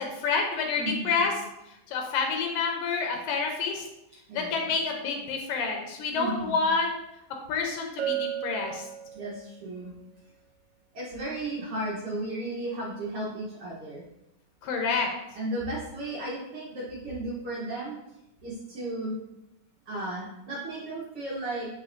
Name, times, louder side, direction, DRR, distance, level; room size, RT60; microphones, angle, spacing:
voice 1, 0.2-1.3 1.9-3.9 4.3-6.9 7.5-8.9 14.6-15.1, left 4 dB, 85° left, 2 dB, 2.4 m, -28 dB
voice 2, 0.7-1.2 4.3-4.8 6.1-6.6 9.1-9.9 10.9-14.0 15.3-18.0 18.4-19.2 19.9-21.7, right 1 dB, 70° right, -6 dB, 1.4 m, -34 dB
Bell, 8.0-9.6, right 11 dB, 85° right, 2.2 m, -34 dB
7.9 x 5.0 x 2.5 m, 0.90 s
omnidirectional pair, 3.9 m